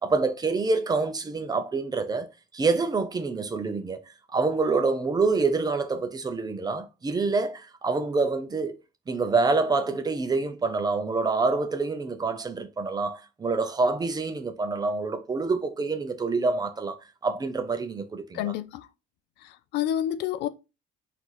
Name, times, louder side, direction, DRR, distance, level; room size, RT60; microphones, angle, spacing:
voice 1, 0.0-2.3 2.5-4.0 4.3-8.8 9.1-17.0 17.2-18.5, right 3 dB, 25° right, 0.6 m, -26 dB
voice 2, 18.3-18.9 19.7-20.5, left 11 dB, 85° left, 0.4 m, -28 dB
4.6 x 2.7 x 3.9 m
cardioid pair, 110°, 17 cm